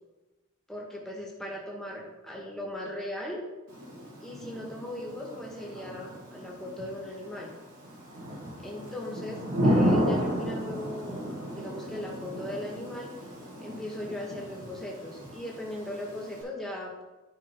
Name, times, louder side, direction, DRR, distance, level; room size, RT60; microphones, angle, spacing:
voice 1, 0.7-3.4 4.2-7.5 8.6-13.1 13.6-17.0, left 1 dB, ahead, -3 dB, 1.7 m, -38 dB
Thunder / Rain, 3.7-16.4, equal, 85° right, 2.9 m, -33 dB
10.5 x 5.3 x 3.8 m, 1.1 s
head